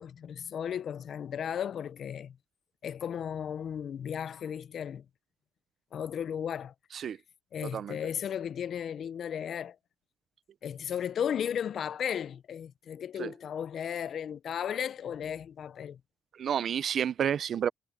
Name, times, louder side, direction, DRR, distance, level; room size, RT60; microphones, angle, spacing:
voice 1, 0.0-2.4 2.8-5.0 5.9-6.7 7.5-9.8 10.6-16.0, left 8 dB, 60° left, 0.6 m, -35 dB
voice 2, 16.4-17.7, right 8 dB, 60° right, 0.6 m, -30 dB
cardioid pair, 90°, 0 cm